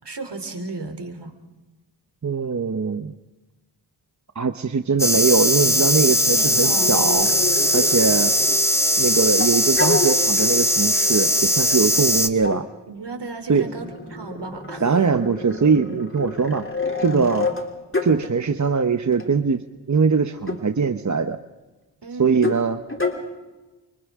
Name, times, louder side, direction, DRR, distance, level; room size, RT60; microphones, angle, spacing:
voice 1, 0.0-1.3 6.2-7.2 12.9-14.9 22.0-22.5, right 3 dB, 65° right, 6 dB, 3.4 m, -34 dB
voice 2, 2.2-3.1 4.3-7.3 7.7-8.3 9.0-12.7 13.5-13.7 14.8-16.7 17.0-17.5 18.0-21.4 22.2-22.8, right 5 dB, 40° right, 8 dB, 1.0 m, -21 dB
sound 1, 5.0-12.3, equal, 5° left, 1.4 m, -19 dB
sound 2, 5.7-8.8 9.4-10.5 11.4-11.5 12.4-12.6 13.5-18.3 19.1-19.3 20.4-20.6 22.3-22.6 22.9-23.1, left 3 dB, 25° left, 3.2 m, -29 dB
29.0 x 25.0 x 3.7 m, 1.1 s
cardioid pair, 55°, 45 cm